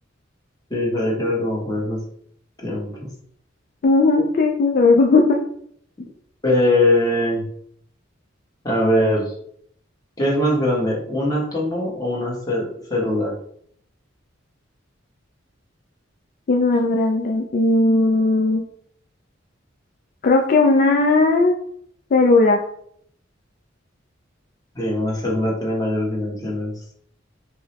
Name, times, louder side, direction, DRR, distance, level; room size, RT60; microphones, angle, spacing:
voice 1, 0.7-2.0 2.6-2.9 6.4-7.4 8.6-9.3 10.2-12.6 12.9-13.3 24.7-26.7, left 1 dB, 20° left, -3 dB, 1.0 m, -21 dB
voice 2, 3.8-5.4 16.5-18.6 20.2-21.5 22.1-22.6, left 3 dB, 50° left, 1 dB, 0.3 m, -16 dB
4.6 x 2.0 x 2.8 m, 0.65 s
head